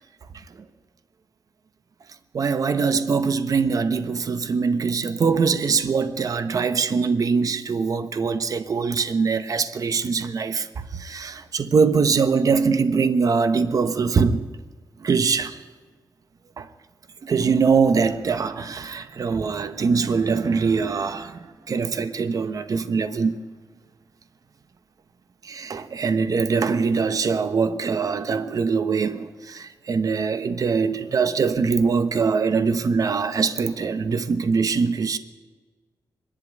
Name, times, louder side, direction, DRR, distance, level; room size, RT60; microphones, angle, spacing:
voice 1, 2.3-14.4 15.0-15.6 16.6-16.7 17.2-23.4 25.4-35.2, right 5 dB, 60° right, 1.1 m, -22 dB
24.0 x 11.5 x 9.4 m
wide cardioid pair, 95°, 7 cm